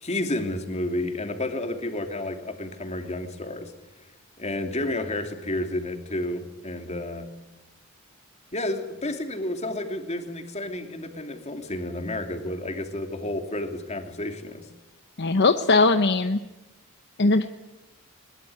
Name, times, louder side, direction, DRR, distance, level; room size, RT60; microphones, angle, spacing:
voice 1, 0.0-3.7 4.4-7.3 8.5-14.7, left 1 dB, 30° left, 5 dB, 2.8 m, -31 dB
voice 2, 15.2-16.4 17.2-17.5, left 3 dB, 55° left, 8 dB, 0.9 m, -20 dB
22.0 x 21.5 x 9.7 m, 1.1 s
head